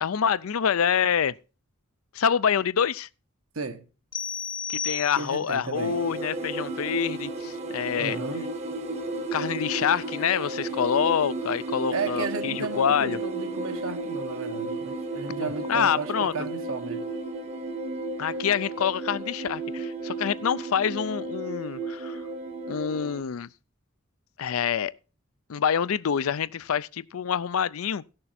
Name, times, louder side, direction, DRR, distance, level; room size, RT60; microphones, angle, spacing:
voice 1, 0.0-1.3 2.1-3.1 4.7-8.2 9.3-13.2 15.4-16.3 18.2-22.2 22.7-23.5 24.4-24.9 25.5-28.0, left 7 dB, 80° left, 0.5 m, -26 dB
sound 1, 4.1-5.6, left 6 dB, 20° left, 0.7 m, -33 dB
voice 2, 5.2-6.0 8.0-8.5 11.9-17.1, right 4 dB, 75° right, 1.2 m, -34 dB
sound 2, 5.7-23.2, right 2 dB, 30° right, 0.8 m, -33 dB
16.0 x 6.6 x 4.2 m
head